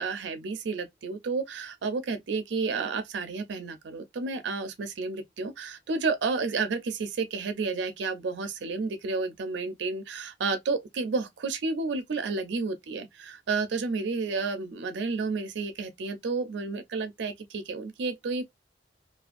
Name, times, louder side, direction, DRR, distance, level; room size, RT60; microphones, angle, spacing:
voice 1, 0.0-18.5, right 4 dB, 75° right, 0.4 m, -31 dB
2.5 x 2.3 x 2.4 m
head